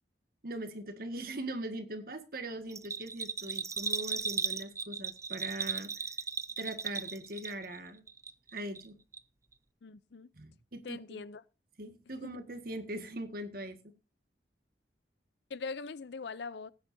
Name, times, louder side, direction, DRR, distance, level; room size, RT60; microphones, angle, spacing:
voice 1, 0.4-6.0 6.6-8.0 8.5-9.0 10.3-11.3 11.8-13.8, right 1 dB, 50° right, 1.7 m, -41 dB
Bell, 2.7-7.8 8.1-8.9 9.1-9.2, right 5 dB, 15° right, 0.5 m, -36 dB
voice 2, 9.8-10.3 10.8-11.4 12.2-12.4 15.5-16.7, left 4 dB, 65° left, 0.5 m, -42 dB
18.5 x 9.6 x 2.7 m
head